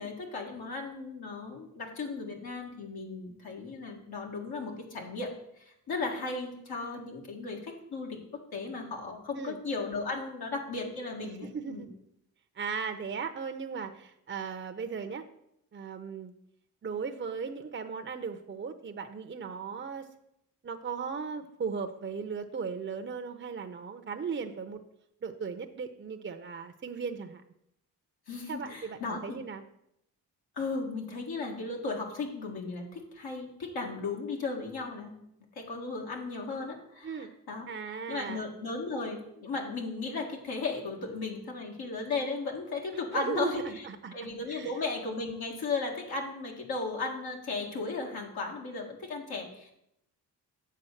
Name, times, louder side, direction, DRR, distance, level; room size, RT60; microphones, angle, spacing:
voice 1, 0.0-5.3 5.6-11.9 28.3-29.4 30.5-35.2 35.5-43.9 44.1-49.7, left 3 dB, 70° left, 0 dB, 1.8 m, -36 dB
voice 2, 11.4-11.9 12.6-15.2 15.7-16.3 16.8-20.1 20.6-24.8 25.2-27.4 28.4-29.6 37.0-37.3 37.7-38.4 43.1-44.1 44.5-44.7, right 5 dB, 30° right, 6 dB, 0.7 m, -37 dB
7.7 x 4.0 x 6.5 m, 0.79 s
supercardioid pair, 55°, 39 cm